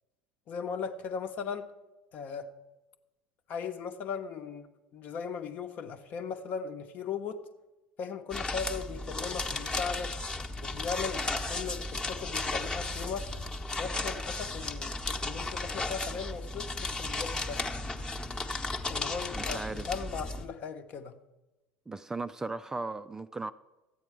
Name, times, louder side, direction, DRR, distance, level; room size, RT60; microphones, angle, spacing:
voice 1, 0.5-1.7 2.1-2.5 3.5-7.4 8.0-10.2 10.6-13.3 13.8-17.6 18.9-21.2, left 6 dB, 50° left, 1.0 m, -38 dB
sound 1, 8.3-20.5, left 2 dB, 20° left, 1.0 m, -35 dB
voice 2, 19.4-19.9 21.9-23.5, right 3 dB, 15° right, 0.4 m, -37 dB
13.5 x 8.7 x 4.7 m
figure-of-eight pair, 70°, 4 cm